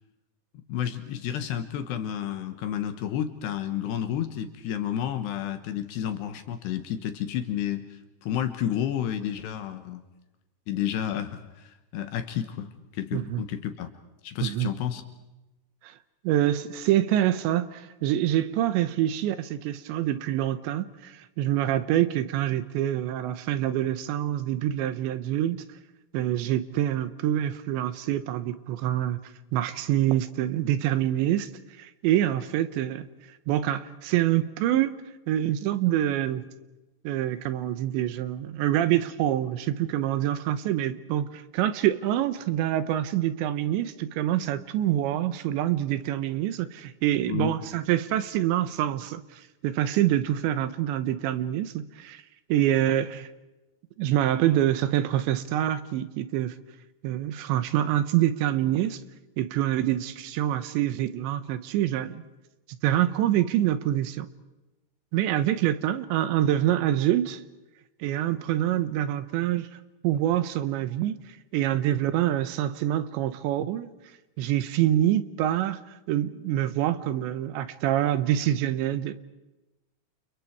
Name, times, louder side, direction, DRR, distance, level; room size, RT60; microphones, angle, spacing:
voice 1, 0.5-10.0 10.7-13.9 14.2-15.0 47.3-47.5, left 10 dB, 70° left, 9 dB, 3.2 m, -31 dB
voice 2, 13.1-13.4 14.4-14.7 15.8-16.0 16.2-25.6 26.1-29.2 29.5-31.5 31.8-33.1 33.5-34.9 35.3-36.4 37.0-52.2 52.5-53.3 54.0-56.5 57.0-59.0 59.4-62.2 62.7-64.3 65.1-67.4 68.0-73.9 74.4-75.8 76.1-79.1, right 12 dB, 75° right, 13 dB, 3.0 m, -26 dB
29.5 x 29.5 x 4.7 m, 1.0 s
omnidirectional pair, 5.5 m